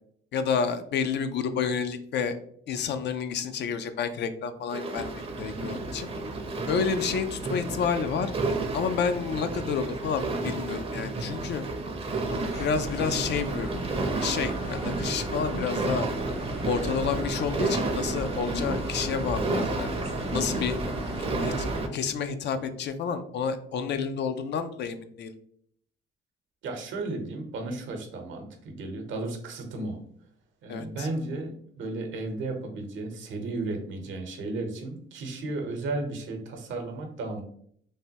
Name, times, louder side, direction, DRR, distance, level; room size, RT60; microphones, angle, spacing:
voice 1, 0.3-2.4 2.7-5.1 5.4-6.1 6.7-8.3 8.7-11.6 12.6-13.7 14.2-16.1 16.6-19.9 20.3-20.7 21.4-21.5 21.9-25.3 30.7-31.1, left 6 dB, 60° left, 10 dB, 0.4 m, -29 dB
sound 1, 4.7-21.9, right 2 dB, 30° right, 0.5 m, -31 dB
sound 2, 12.3-21.8, equal, 85° left, 0.8 m, -39 dB
voice 2, 26.6-30.0 30.6-37.4, right 2 dB, 75° right, 4 dB, 0.7 m, -34 dB
3.3 x 2.2 x 2.8 m, 0.64 s
cardioid pair, 90°, 20 cm